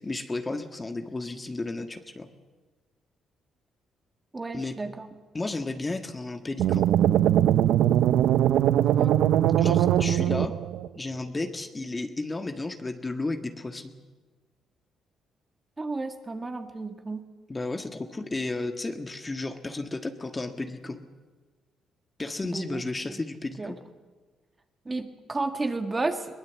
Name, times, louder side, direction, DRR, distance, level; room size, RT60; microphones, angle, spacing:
voice 1, 0.0-2.3 4.5-4.7 5.3-6.8 9.6-10.6 10.9-13.9 17.5-21.0 22.2-23.8, left 2 dB, 20° left, 7 dB, 1.6 m, -33 dB
voice 2, 4.3-5.1 8.8-9.2 15.8-17.3 22.4-22.8 23.6-23.7 24.9-26.3, right 3 dB, 25° right, 7 dB, 1.9 m, -32 dB
sound 1, 6.6-10.9, right 11 dB, 85° right, 0.6 m, -21 dB
22.0 x 19.0 x 8.3 m, 1.3 s
cardioid pair, 90°, 0 cm